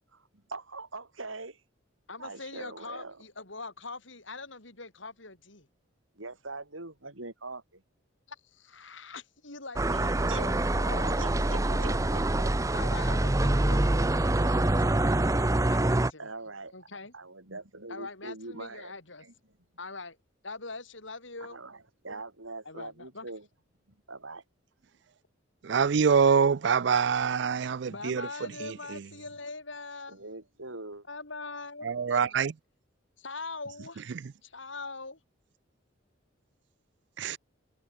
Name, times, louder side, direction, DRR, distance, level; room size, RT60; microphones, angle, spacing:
voice 1, 0.1-1.6 2.2-3.2 6.2-7.8 9.9-10.4 11.2-12.8 13.0-13.1 16.2-18.9 19.2-19.3 21.4-23.5 23.9-24.4 30.1-31.0, right 3 dB, 85° right, 5.5 m, -43 dB
voice 2, 2.1-5.7 8.3-12.0 12.7-15.0 15.7-16.3 16.7-17.1 17.9-19.2 19.8-20.2 20.4-21.6 22.7-23.3 27.8-30.2 31.1-32.4 33.2-34.0 34.4-35.2, left 3 dB, 70° left, 6.0 m, -42 dB
sound 1, 9.8-16.1, right 1 dB, 15° right, 0.6 m, -25 dB
voice 3, 25.6-28.3 28.6-29.0 31.8-32.5 37.2-37.4, right 6 dB, 60° right, 0.4 m, -25 dB
head